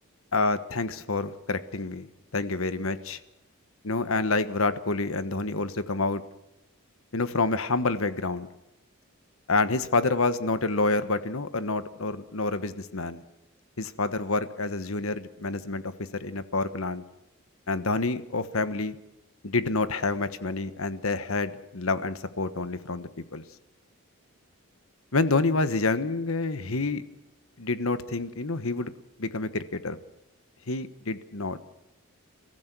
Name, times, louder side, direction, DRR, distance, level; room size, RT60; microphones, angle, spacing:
voice 1, 0.3-2.1 2.3-3.2 3.8-6.2 7.1-8.5 9.5-13.2 13.8-17.0 17.7-19.0 19.4-23.4 25.1-27.0 27.6-28.9 29.2-30.0 30.7-31.6, left 3 dB, 70° left, 12 dB, 1.3 m, -28 dB
29.5 x 15.5 x 6.2 m, 0.91 s
head